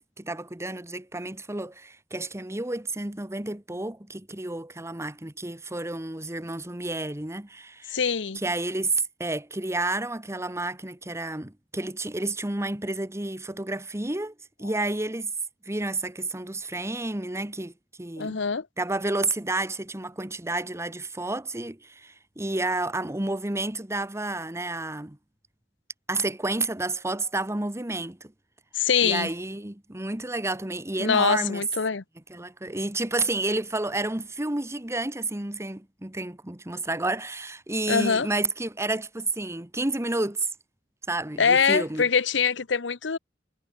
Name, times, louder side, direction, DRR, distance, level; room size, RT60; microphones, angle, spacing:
voice 1, 0.2-8.0 8.3-15.3 15.6-17.7 18.0-18.4 18.8-25.2 26.1-28.3 29.0-31.6 32.3-40.5 41.1-42.1, right 2 dB, 15° right, 1.4 m, -30 dB
voice 2, 7.9-8.4 18.2-18.7 28.7-29.3 31.0-32.0 37.9-38.3 41.4-43.2, left 6 dB, 85° left, 0.9 m, -23 dB
head